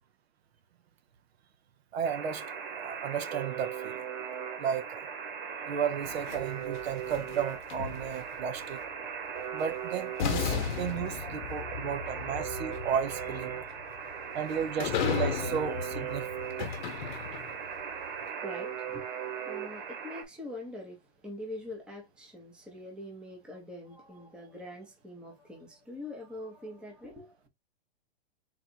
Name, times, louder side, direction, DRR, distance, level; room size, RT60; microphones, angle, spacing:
voice 1, 1.9-2.4 2.8-4.0 4.6-5.1 5.7-8.8 9.5-13.6 14.3-16.3 16.6-16.7, right 8 dB, 65° right, 0.9 m, -34 dB
Alarm, 2.0-20.2, right 8 dB, 50° right, 1.5 m, -38 dB
sound 1, 6.0-8.4 9.6-9.7 10.2-17.7, left 7 dB, 45° left, 0.9 m, -35 dB
voice 2, 13.6-14.4 16.8-27.5, left 1 dB, 5° right, 0.8 m, -45 dB
4.0 x 2.5 x 4.3 m
hypercardioid pair, 155°, 34 cm